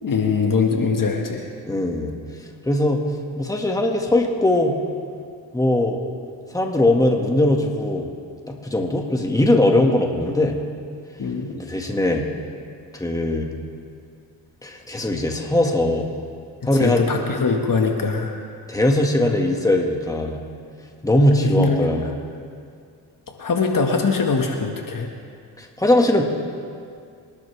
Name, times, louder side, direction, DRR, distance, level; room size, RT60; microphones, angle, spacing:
voice 1, 0.0-1.5 11.2-11.5 16.7-18.3 21.4-21.9 23.4-25.1, left 4 dB, 45° left, 2 dB, 1.9 m, -22 dB
voice 2, 1.7-2.1 2.7-3.0 3.4-4.8 5.5-6.0 6.5-8.1 8.6-10.6 11.5-12.3 12.9-13.5 14.6-16.1 16.7-17.0 18.7-20.4 21.0-22.1 25.6-26.2, left 1 dB, 10° left, 1 dB, 2.0 m, -20 dB
26.5 x 12.0 x 3.5 m, 2.2 s
cardioid pair, 75°, 44 cm